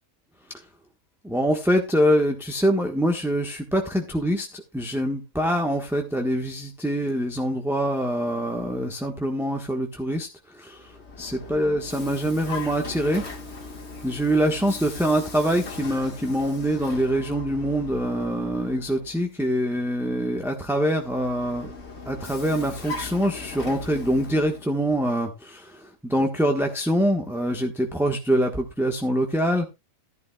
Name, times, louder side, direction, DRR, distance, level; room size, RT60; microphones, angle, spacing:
voice 1, 1.2-10.9 11.2-13.2 14.0-21.7 22.0-29.6, equal, ahead, 1.0 m, -24 dB
Vehicle, 10.7-19.2 20.9-24.8, left 4 dB, 45° left, 1.8 m, -39 dB
13.5 x 11.5 x 2.3 m
omnidirectional pair, 1.6 m